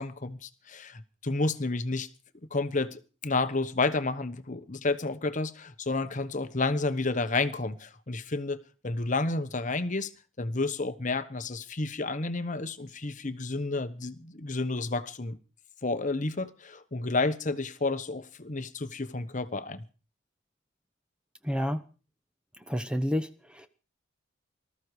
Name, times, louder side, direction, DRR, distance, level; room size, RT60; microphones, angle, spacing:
voice 1, 0.0-2.1 2.5-8.6 8.8-10.1 10.4-15.4 15.8-19.8, left 3 dB, 40° left, 1.0 m, -30 dB
voice 2, 21.4-21.8 22.7-23.7, equal, 5° right, 0.9 m, -30 dB
19.5 x 13.5 x 4.8 m
head